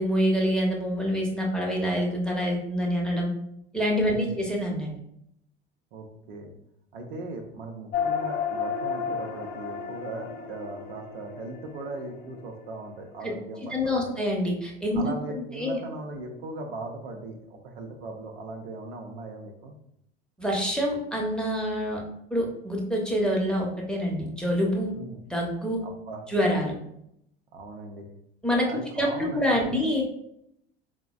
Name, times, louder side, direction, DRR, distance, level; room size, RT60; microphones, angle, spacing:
voice 1, 0.0-3.3 3.7-5.0 13.2-13.3 13.7-15.1 15.5-15.8 20.4-22.0 22.3-24.9 25.3-25.8 26.3-26.7 28.4-28.7 29.0-30.1, equal, 5° left, -2 dB, 0.7 m, -26 dB
voice 2, 4.1-4.4 5.9-6.5 6.9-14.1 14.9-19.7 24.9-25.2 25.8-26.2 27.5-28.1 28.7-29.6, right 2 dB, 70° right, 2 dB, 0.6 m, -39 dB
sound 1, 7.9-12.7, left 6 dB, 35° left, 0.5 m, -32 dB
3.8 x 2.0 x 2.3 m, 0.76 s
figure-of-eight pair, 65°, 31 cm